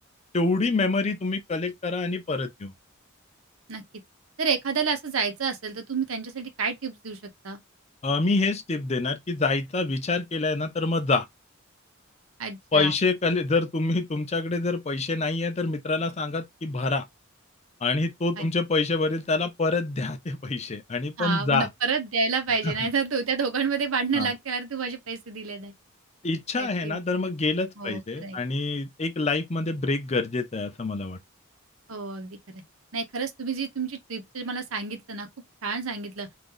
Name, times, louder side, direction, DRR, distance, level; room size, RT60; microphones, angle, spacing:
voice 1, 0.3-2.7 8.0-11.2 12.7-17.0 17.8-21.7 22.6-22.9 24.1-24.3 26.2-31.2, left 3 dB, 30° left, 0.5 m, -26 dB
voice 2, 4.4-7.6 12.4-12.9 18.4-18.5 21.2-25.7 26.6-27.0 27.8-28.4 31.9-32.6 32.9-35.3 35.6-36.3, right 5 dB, 80° right, 0.9 m, -29 dB
2.8 x 2.5 x 3.7 m
head